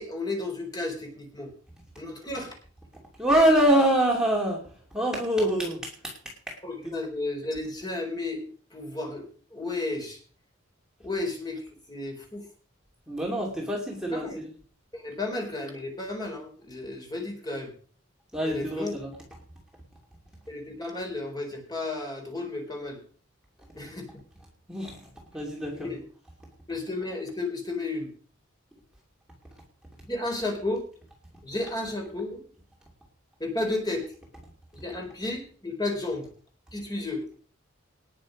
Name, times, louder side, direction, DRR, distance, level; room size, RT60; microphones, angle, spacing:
voice 1, 0.0-1.5 2.0-2.6 6.6-8.4 8.7-10.2 11.0-12.5 14.1-14.4 14.9-17.7 18.4-18.9 20.5-23.0 23.7-24.1 25.7-26.0 26.7-28.1 30.1-30.8 31.4-32.4 33.4-34.0 34.7-36.3 36.7-37.3, left 2 dB, 20° left, 2 dB, 4.1 m, -33 dB
voice 2, 3.1-6.6 13.1-14.5 18.3-19.2 24.7-25.9, right 1 dB, 5° right, -2 dB, 2.7 m, -25 dB
19.0 x 7.4 x 5.2 m, 0.44 s
head